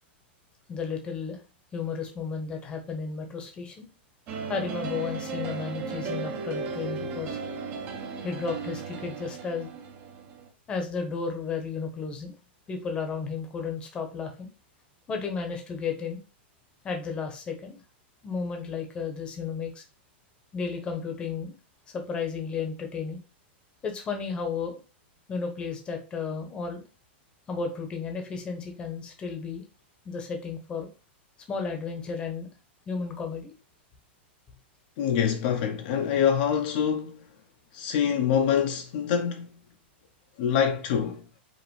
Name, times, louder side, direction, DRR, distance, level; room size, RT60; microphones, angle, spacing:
voice 1, 0.7-1.4 1.7-3.9 4.5-7.4 8.2-9.7 10.7-12.3 12.7-14.5 15.1-16.2 16.8-17.8 18.2-19.8 20.5-21.5 21.9-23.2 23.8-24.8 25.3-26.8 27.5-29.6 30.0-30.9 31.5-32.5 32.9-33.5, left 5 dB, 15° left, 0.9 m, -33 dB
sound 1, 4.3-10.5, right 4 dB, 30° right, 0.7 m, -35 dB
voice 2, 35.0-37.2 37.7-39.5 40.4-41.2, left 8 dB, 45° left, 0.7 m, -25 dB
5.1 x 2.9 x 3.2 m
supercardioid pair, 165°, 6 cm